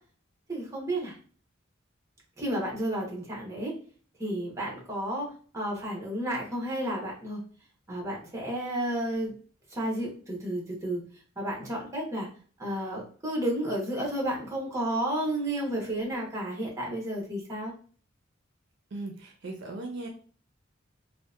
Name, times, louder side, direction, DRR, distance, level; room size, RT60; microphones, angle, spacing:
voice 1, 0.5-1.1 2.4-3.7 4.2-5.3 5.5-7.4 7.9-9.3 9.7-11.0 11.4-12.3 12.6-17.7, right 1 dB, 15° right, -2 dB, 0.8 m, -31 dB
voice 2, 18.9-20.1, right 2 dB, 65° right, 2 dB, 0.5 m, -38 dB
2.7 x 2.0 x 2.3 m, 0.42 s
head